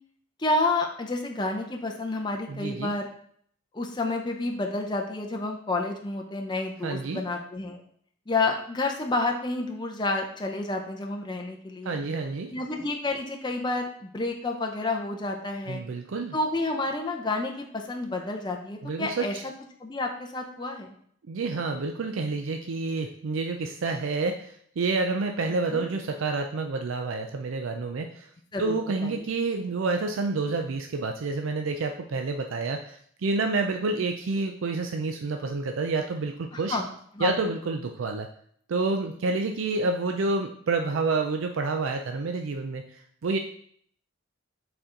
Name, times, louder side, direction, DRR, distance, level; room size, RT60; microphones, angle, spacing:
voice 1, 0.4-3.1 3.7-7.8 8.3-12.0 12.5-15.8 16.3-19.3 19.8-20.9 25.7-25.9 28.5-28.8 29.0-29.2 36.5-36.9 37.1-37.3, left 2 dB, 20° left, 2 dB, 0.5 m, -30 dB
voice 2, 2.5-2.9 6.8-7.2 11.8-12.5 15.7-16.4 18.8-19.4 21.3-28.3 28.6-36.8 37.2-38.3 38.7-43.4, right 3 dB, 80° right, 5 dB, 0.4 m, -29 dB
6.6 x 4.3 x 3.8 m, 0.64 s
head